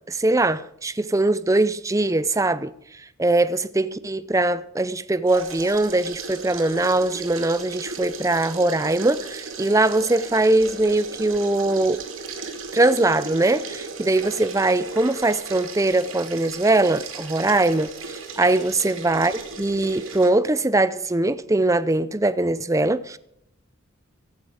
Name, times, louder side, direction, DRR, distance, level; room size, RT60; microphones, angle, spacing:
voice 1, 0.1-2.7 3.2-12.0 12.7-23.2, right 2 dB, 15° right, 0.6 m, -21 dB
sound 1, 5.3-20.3, right 4 dB, 75° right, 2.5 m, -36 dB
15.5 x 13.0 x 4.9 m
head